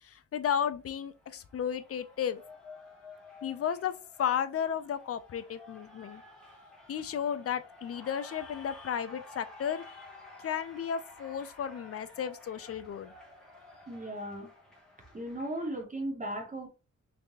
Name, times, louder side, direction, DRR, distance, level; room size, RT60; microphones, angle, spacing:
voice 1, 0.0-2.4 3.4-3.9 4.2-6.2 6.9-10.0 10.4-13.1, left 8 dB, 50° left, 0.4 m, -33 dB
Cheering, 0.7-15.8, left 2 dB, ahead, 1.1 m, -52 dB
voice 2, 13.9-14.5 15.1-16.7, right 1 dB, 25° right, 1.1 m, -36 dB
3.3 x 3.2 x 2.7 m
wide cardioid pair, 130°, 32 cm